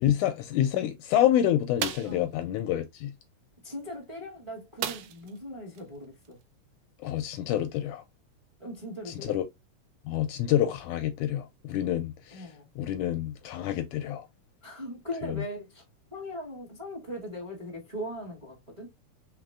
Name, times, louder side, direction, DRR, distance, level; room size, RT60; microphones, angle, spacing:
voice 1, 0.0-3.1 7.0-8.0 9.1-9.5 10.1-12.5 12.8-14.3 15.2-15.4, left 11 dB, 80° left, 1.9 m, -27 dB
sound 1, 1.8-2.2 4.8-5.4 5.7-5.8 6.2-6.4, right 10 dB, 90° right, 1.5 m, -34 dB
voice 2, 3.6-6.4 8.6-9.4 12.3-12.7 14.6-15.8 16.1-18.9, equal, 15° right, 1.2 m, -39 dB
4.9 x 3.7 x 2.3 m
omnidirectional pair, 3.8 m